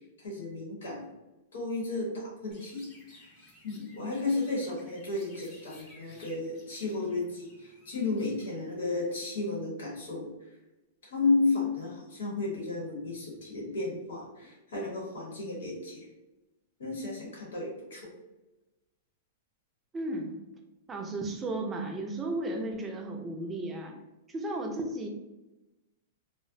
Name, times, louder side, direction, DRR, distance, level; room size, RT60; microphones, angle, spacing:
voice 1, 0.2-1.1 1.5-2.8 3.1-3.3 3.6-10.3 11.0-16.1 16.8-18.1, left 3 dB, 90° left, -4 dB, 1.0 m, -33 dB
Chirp tweet, 2.5-9.3, left 1 dB, 35° left, 0.9 m, -57 dB
voice 2, 19.9-20.3 20.9-23.9 24.3-25.1, right 2 dB, 15° right, 2 dB, 0.4 m, -34 dB
2.4 x 2.0 x 2.5 m, 1.0 s
hypercardioid pair, 140°, 0 cm